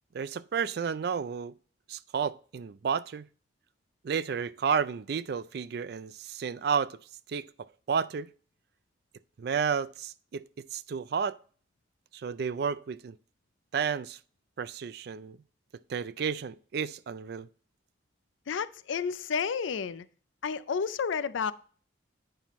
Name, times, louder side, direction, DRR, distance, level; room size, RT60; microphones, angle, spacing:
voice 1, 0.1-1.5 1.9-3.3 4.0-7.0 7.3-7.5 7.9-8.3 9.4-11.4 12.1-13.2 13.7-14.2 14.6-15.4 15.9-17.5, right 6 dB, 55° right, 0.3 m, -31 dB
voice 2, 18.5-20.1 20.4-21.5, left 6 dB, 85° left, 0.4 m, -31 dB
9.0 x 5.7 x 3.0 m
head